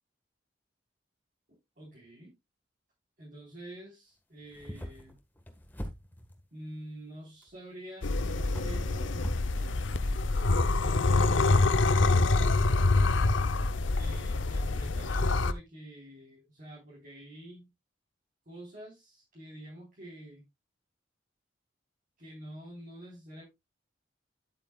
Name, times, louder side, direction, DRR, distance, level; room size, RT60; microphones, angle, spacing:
voice 1, 1.8-2.3 3.2-5.2 6.5-9.3 10.8-12.3 13.9-17.7 18.5-20.4 22.2-23.4, right 1 dB, 45° right, -4 dB, 4.0 m, -47 dB
sound 1, 4.4-6.4 7.4-7.5 8.2-9.5, equal, 10° left, 1.4 m, -42 dB
sound 2, 8.0-15.5, left 3 dB, 85° left, 0.7 m, -26 dB
11.0 x 8.5 x 2.3 m, 0.21 s
head